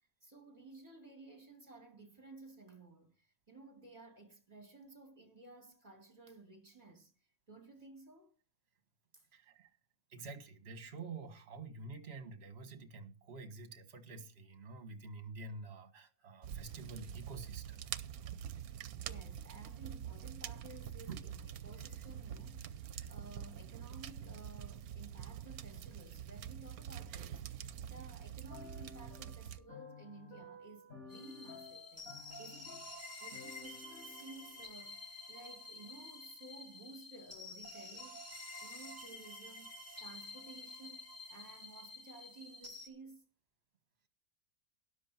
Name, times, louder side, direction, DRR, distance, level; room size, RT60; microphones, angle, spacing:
voice 1, 0.2-7.1 7.5-8.3 9.1-9.2 18.9-21.3 21.6-35.0 35.3-39.7 40.0-43.2, right 3 dB, 25° right, 2.7 m, -55 dB
voice 2, 9.3-9.7 10.1-17.9 21.1-21.3 22.9-23.1, right 3 dB, 45° right, 1.7 m, -48 dB
sound 1, 16.4-29.6, right 9 dB, 80° right, 1.2 m, -46 dB
sound 2, 28.5-34.9, left 4 dB, 70° left, 7.0 m, -54 dB
sound 3, 31.1-42.9, left 2 dB, 10° right, 2.4 m, -50 dB
13.0 x 11.0 x 4.4 m
omnidirectional pair, 1.5 m